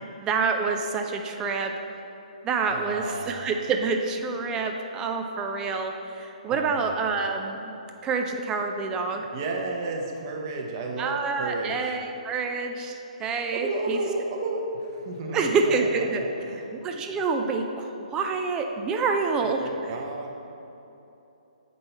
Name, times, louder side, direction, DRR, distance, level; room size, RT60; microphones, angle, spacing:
voice 1, 0.2-1.7 2.4-7.7 8.0-9.2 11.0-14.0 15.3-16.2 16.7-19.6, right 4 dB, 15° right, 4 dB, 0.4 m, -27 dB
voice 2, 2.7-3.5 6.5-7.0 9.1-12.0 13.5-16.7 19.4-20.3, right 2 dB, 35° right, 1 dB, 1.0 m, -33 dB
7.7 x 5.4 x 4.2 m, 2.9 s
figure-of-eight pair, 130°, 4 cm